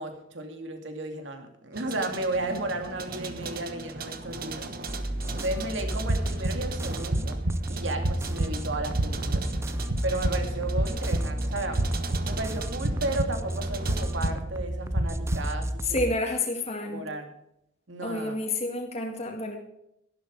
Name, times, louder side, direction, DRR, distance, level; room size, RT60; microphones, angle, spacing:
voice 1, 0.0-4.7 5.4-7.4 7.7-9.5 10.0-11.8 12.3-16.1 16.9-17.3 17.9-18.4, right 2 dB, 65° right, 6 dB, 2.5 m, -33 dB
sound 1, 1.7-14.4, right 3 dB, 50° right, 1.2 m, -39 dB
sound 2, 4.9-16.2, right 1 dB, 15° right, 0.5 m, -33 dB
sound 3, 6.1-15.7, right 1 dB, 85° right, 1.4 m, -31 dB
voice 2, 15.8-17.1 18.0-19.6, left 2 dB, 30° left, 2 dB, 2.1 m, -29 dB
12.5 x 11.5 x 4.9 m, 0.79 s
head